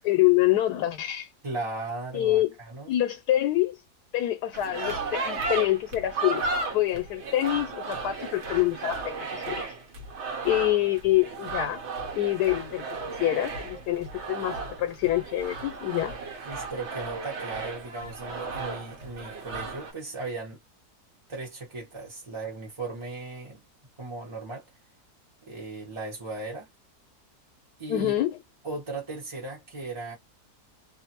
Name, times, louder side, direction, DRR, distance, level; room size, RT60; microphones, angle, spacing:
voice 1, 0.0-1.3 2.1-2.5 2.9-3.8 4.1-6.5 6.7-9.8 10.4-11.8 12.1-12.8 13.2-16.1 27.9-28.4, left 14 dB, 85° left, 1.2 m, -26 dB
voice 2, 1.4-2.9 16.5-20.6 21.3-23.6 24.0-24.7 25.4-26.7 27.8-28.2 28.6-30.1, right 3 dB, 25° right, 0.7 m, -37 dB
sound 1, 4.5-19.9, right 3 dB, 55° right, 0.9 m, -35 dB
2.5 x 2.5 x 2.8 m
omnidirectional pair, 1.7 m